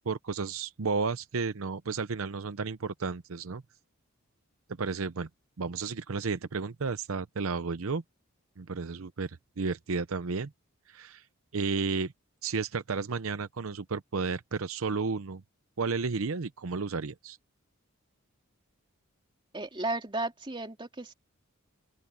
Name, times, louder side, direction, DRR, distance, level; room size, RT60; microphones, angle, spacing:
voice 1, 0.0-3.6 4.8-5.3 5.6-8.0 8.6-10.5 10.9-11.2 11.5-12.1 12.4-15.4 15.8-17.4, right 4 dB, 75° right, 0.7 m, -32 dB
voice 2, 19.5-21.1, right 2 dB, 25° right, 2.9 m, -34 dB
open air
head